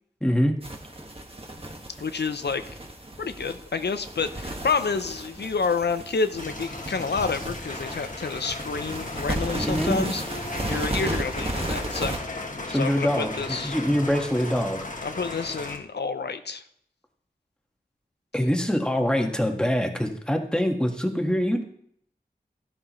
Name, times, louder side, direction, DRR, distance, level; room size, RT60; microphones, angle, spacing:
voice 1, 0.2-0.6 9.5-10.1 12.7-14.8 18.3-21.6, equal, 5° left, 3 dB, 1.7 m, -24 dB
sound 1, 0.6-12.2, right 1 dB, 35° right, 1.7 m, -34 dB
voice 2, 2.0-2.6 3.2-10.2 10.7-12.1 12.7-13.8 15.0-16.6, left 4 dB, 90° left, 9 dB, 0.6 m, -29 dB
sound 2, 6.4-15.8, left 2 dB, 50° left, 1.6 m, -36 dB
13.0 x 11.0 x 3.1 m, 0.67 s
wide cardioid pair, 45°, 17 cm